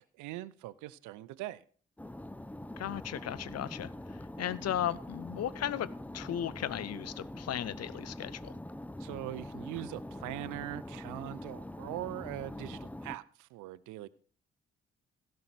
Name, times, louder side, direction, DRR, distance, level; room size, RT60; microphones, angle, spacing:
voice 1, 0.0-1.6 9.0-14.1, right 15 dB, 65° right, 0.6 m, -41 dB
sound 1, 2.0-13.2, left 1 dB, 5° left, 0.6 m, -44 dB
voice 2, 2.8-8.5, left 11 dB, 50° left, 0.8 m, -36 dB
16.0 x 5.5 x 6.2 m
hypercardioid pair, 40°, 32 cm